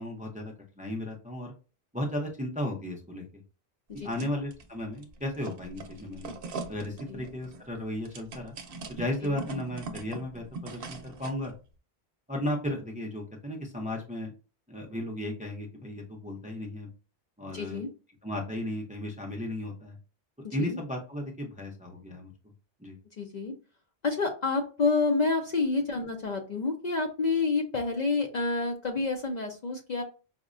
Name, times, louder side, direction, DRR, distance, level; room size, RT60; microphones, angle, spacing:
voice 1, 0.0-1.5 1.9-3.2 3.9-6.3 6.7-8.5 8.9-11.5 12.3-14.3 14.7-16.9 17.4-17.8 18.2-20.0 20.5-22.3 22.8-23.0, left 1 dB, 10° right, 1 dB, 0.4 m, -35 dB
voice 2, 3.9-4.3 7.1-7.2 9.2-9.4 17.5-17.9 20.4-20.8 23.2-23.5 24.0-30.0, left 3 dB, 55° left, 3 dB, 0.5 m, -29 dB
sound 1, 3.9-4.7 5.0-11.5, right 3 dB, 65° right, 0.8 m, -41 dB
4.9 x 2.1 x 2.4 m, 0.34 s
omnidirectional pair, 1.1 m